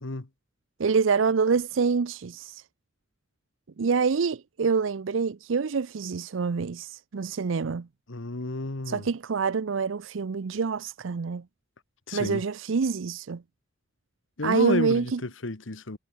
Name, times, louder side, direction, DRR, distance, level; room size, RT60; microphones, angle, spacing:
voice 1, 0.8-2.6 3.8-7.9 8.9-11.4 12.1-13.4 14.4-15.2, right 5 dB, 75° right, 0.5 m, -26 dB
voice 2, 8.1-9.1 12.1-12.4 14.4-16.0, left 2 dB, 80° left, 1.4 m, -31 dB
head